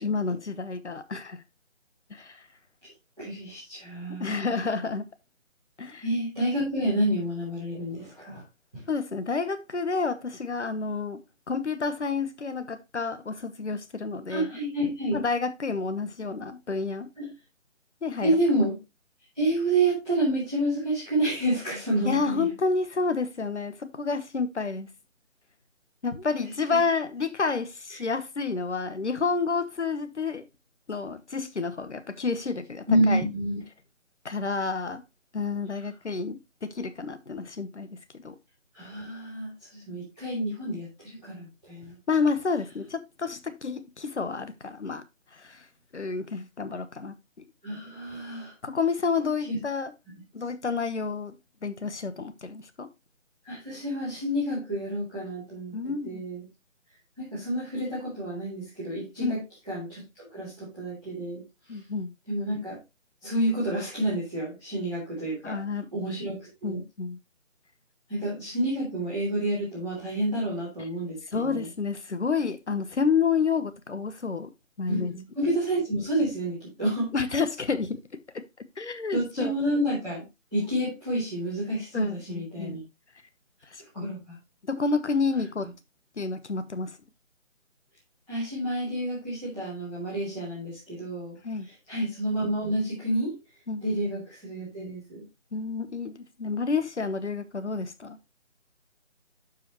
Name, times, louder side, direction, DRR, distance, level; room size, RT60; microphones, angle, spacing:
voice 1, 0.0-1.4 2.1-2.4 4.2-5.0 5.8-6.0 8.9-11.2 11.5-14.5 15.1-17.1 18.0-18.3 22.0-24.9 26.0-30.5 30.9-33.2 34.2-35.0 35.3-37.9 38.2-38.4 42.1-45.0 45.3-45.6 45.9-47.1 48.6-49.9 50.3-51.3 51.6-52.9 55.7-56.2 59.2-59.4 61.7-62.1 65.4-65.9 66.6-67.2 71.3-74.5 74.8-75.1 77.1-78.0 78.8-79.5 81.9-82.8 83.7-84.2 84.7-85.7 86.2-86.9 91.4-91.7 93.7-93.8 95.5-98.2, left 4 dB, 60° left, 1.2 m, -29 dB
voice 2, 3.2-4.6 6.0-8.4 8.7-8.8 14.3-15.2 17.1-17.3 18.2-18.8 19.3-22.5 26.7-26.8 27.9-28.0 32.9-33.6 38.7-42.0 47.6-48.5 49.5-49.6 53.4-56.4 57.2-61.4 61.7-61.8 62.3-62.8 63.2-65.6 65.9-66.8 68.1-71.7 74.9-77.1 79.1-80.2 80.5-82.8 83.9-84.4 85.6-85.7 88.3-91.4 91.6-93.4 93.8-95.2, right 1 dB, ahead, 1.6 m, -29 dB
12.0 x 5.1 x 3.0 m
figure-of-eight pair, 175°, 39 cm